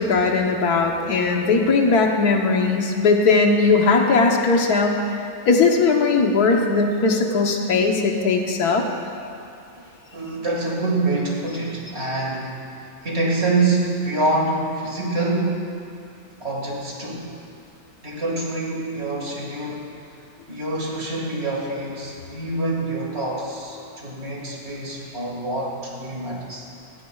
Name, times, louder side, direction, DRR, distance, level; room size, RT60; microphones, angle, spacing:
voice 1, 0.0-5.0 5.4-8.8, left 4 dB, 85° left, 2 dB, 1.6 m, -19 dB
voice 2, 9.7-15.7 16.4-17.3 18.0-20.0 20.5-26.7, right 2 dB, 45° right, -3 dB, 2.2 m, -26 dB
18.5 x 15.0 x 2.4 m, 2.5 s
omnidirectional pair, 1.6 m